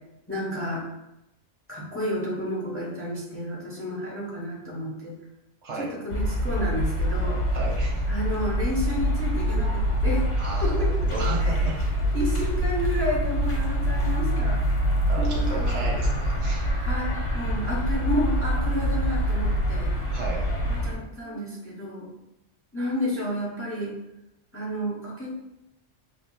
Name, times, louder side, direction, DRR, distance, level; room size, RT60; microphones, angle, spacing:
voice 1, 0.3-0.9 1.7-5.1 5.8-7.4 8.1-10.3 10.6-10.9 11.4-11.7 12.1-14.6 15.2-15.9 16.7-20.2 20.7-22.1 22.7-24.0 24.5-25.3, equal, 15° left, -4 dB, 0.7 m, -31 dB
sound 1, 6.1-20.9, equal, 85° left, 1.3 m, -25 dB
voice 2, 7.5-8.0 10.4-11.8 15.1-16.8 20.1-20.4 21.3-21.4, right 2 dB, 75° right, -1 dB, 1.1 m, -34 dB
4.6 x 3.1 x 2.3 m, 0.89 s
omnidirectional pair, 1.2 m